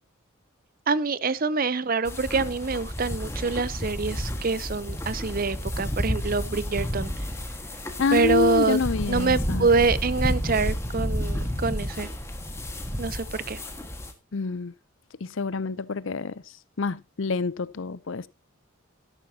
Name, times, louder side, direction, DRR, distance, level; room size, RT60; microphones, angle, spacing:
voice 1, 0.9-7.2 8.1-8.8 9.1-12.1 13.0-13.6, right 4 dB, 40° right, 0.6 m, -25 dB
sound 1, 2.0-14.1, equal, 10° left, 1.5 m, -31 dB
voice 2, 8.0-9.7 14.3-14.7 15.4-16.3 16.8-18.2, left 4 dB, 60° left, 0.6 m, -27 dB
13.0 x 11.5 x 2.8 m
head